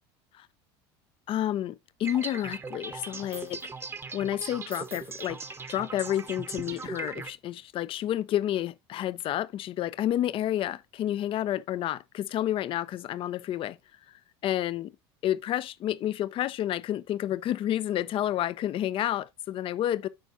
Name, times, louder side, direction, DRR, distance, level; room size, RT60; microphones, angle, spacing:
voice 1, 1.3-3.6 4.1-5.4 5.7-13.8 14.4-14.9 15.2-20.1, left 12 dB, 45° left, 0.6 m, -30 dB
sound 1, 2.0-7.3, right 4 dB, 20° right, 0.9 m, -39 dB
12.5 x 4.6 x 2.6 m
supercardioid pair, 105°, 12 cm